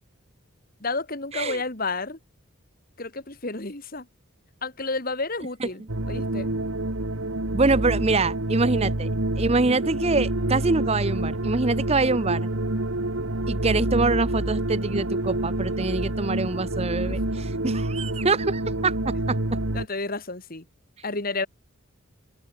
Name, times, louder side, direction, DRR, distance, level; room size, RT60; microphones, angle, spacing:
voice 1, 0.8-2.2 3.0-4.1 4.6-6.5 16.9-17.5 19.7-20.7 21.0-21.5, left 3 dB, 45° left, 2.5 m, -31 dB
sound 1, 5.9-19.9, right 1 dB, 75° right, 2.3 m, -27 dB
voice 2, 7.5-9.1 9.4-12.5 13.5-19.4, right 3 dB, 30° right, 0.7 m, -25 dB
open air
head